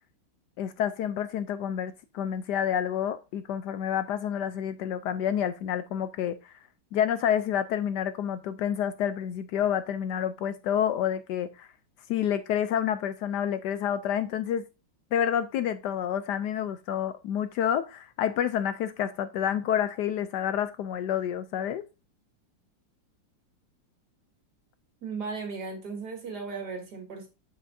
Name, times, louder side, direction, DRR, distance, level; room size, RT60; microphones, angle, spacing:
voice 1, 0.6-6.5 6.9-11.7 12.1-14.7 15.1-21.8, left 9 dB, 75° left, 1.1 m, -29 dB
voice 2, 25.0-27.3, right 4 dB, 60° right, 2.4 m, -36 dB
7.5 x 7.4 x 2.6 m
omnidirectional pair, 2.0 m